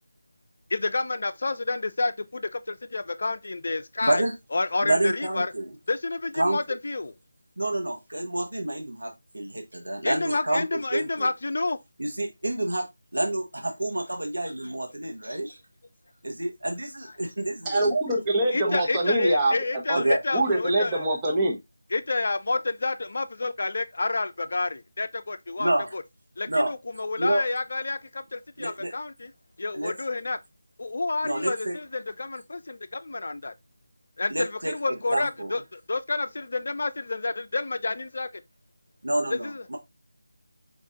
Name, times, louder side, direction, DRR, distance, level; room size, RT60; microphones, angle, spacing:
voice 1, 0.7-4.2 4.5-5.5 5.9-7.1 10.0-11.8 18.5-21.1 21.9-26.0 26.4-29.3 29.6-30.4 30.8-33.5 34.2-38.3 39.3-39.6, left 3 dB, 55° left, 0.5 m, -29 dB
voice 2, 4.0-4.3 4.8-5.7 6.4-6.6 7.6-11.3 12.0-12.8 13.1-15.6 16.2-17.9 19.9-20.2 25.6-25.9 26.5-26.7 27.2-27.4 28.6-28.9 29.7-29.9 31.2-31.8 34.3-34.7 35.1-35.5 39.0-39.8, right 1 dB, 80° right, 1.2 m, -28 dB
voice 3, 17.6-19.5 19.9-20.0 20.3-21.6, right 1 dB, 15° right, 1.1 m, -24 dB
5.3 x 2.5 x 3.6 m
figure-of-eight pair, 165°, 0 cm